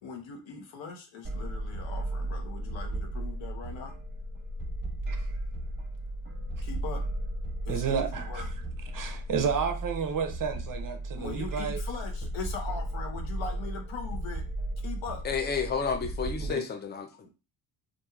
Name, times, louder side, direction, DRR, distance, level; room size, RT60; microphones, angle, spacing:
voice 1, 0.0-3.9 6.6-7.0 7.6-8.5 11.2-14.4 14.8-15.2, left 5 dB, 70° left, 0.9 m, -40 dB
sound 1, 1.2-16.5, right 1 dB, 20° right, 1.0 m, -35 dB
voice 2, 7.7-8.4 8.9-11.8 16.4-16.7, right 6 dB, 45° right, 0.6 m, -31 dB
voice 3, 15.2-17.3, left 6 dB, 20° left, 0.5 m, -31 dB
2.8 x 2.6 x 2.3 m
cardioid pair, 80°, 48 cm